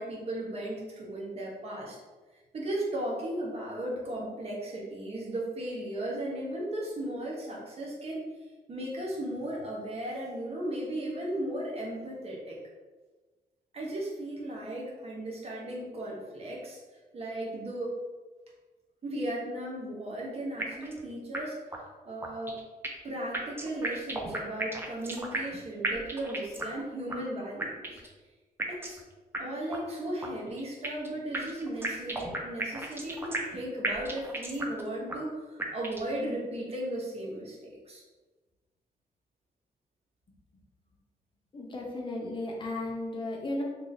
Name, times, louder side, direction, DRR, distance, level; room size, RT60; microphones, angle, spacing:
voice 1, 0.0-2.0 2.5-8.3 8.7-12.6 13.7-16.8 17.1-17.9 19.0-21.6 22.0-22.6 23.0-28.0 28.7-29.0 29.4-38.0, right 1 dB, 40° right, -3 dB, 1.0 m, -36 dB
sound 1, 20.6-21.0 21.3-21.4 21.7-21.8 22.2-23.1 23.3-25.6 25.8-26.8 27.1-27.2 27.6-28.1 28.6-29.0 29.3-29.4 29.7-29.8 30.2-31.1 31.3-33.6 33.8-34.8 35.1-35.2 35.6-36.1, right 2 dB, 15° right, 0.5 m, -34 dB
voice 2, 41.5-43.6, left 2 dB, 35° left, -1 dB, 0.7 m, -34 dB
3.0 x 2.6 x 3.9 m, 1.3 s
cardioid pair, 125°, 15 cm